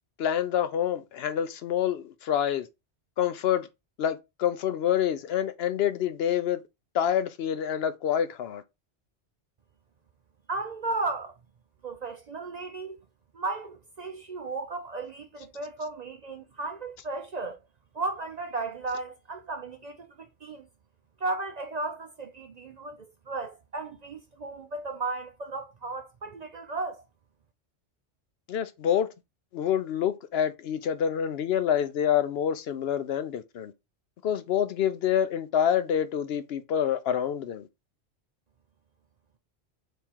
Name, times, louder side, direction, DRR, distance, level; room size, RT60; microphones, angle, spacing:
voice 1, 0.2-2.7 3.2-3.7 4.0-6.6 6.9-8.6 28.5-29.1 29.5-33.7 34.2-37.7, left 9 dB, 65° left, 0.8 m, -27 dB
voice 2, 10.5-11.3 11.8-13.0 13.3-17.6 17.9-20.7 21.2-27.0, right 3 dB, 50° right, 0.6 m, -35 dB
3.6 x 3.3 x 4.4 m
omnidirectional pair, 1.2 m